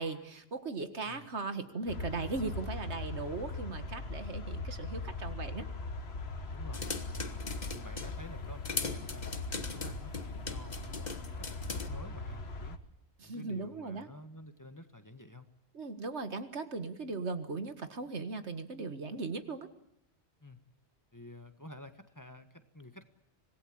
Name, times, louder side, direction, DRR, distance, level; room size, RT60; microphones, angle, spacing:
voice 1, 0.0-5.7 13.2-14.1 15.7-19.7, right 3 dB, 85° right, 10 dB, 2.1 m, -38 dB
sound 1, 1.9-12.8, left 3 dB, 70° left, 1.8 m, -40 dB
voice 2, 6.5-6.8 7.1-7.4 7.7-12.8 13.2-15.5 20.4-20.6 21.1-23.0, left 1 dB, 15° left, 9 dB, 1.6 m, -51 dB
sound 2, 6.7-8.2 8.6-11.9, left 4 dB, 40° left, 1.5 m, -39 dB
26.0 x 19.0 x 8.7 m, 0.80 s
omnidirectional pair, 1.1 m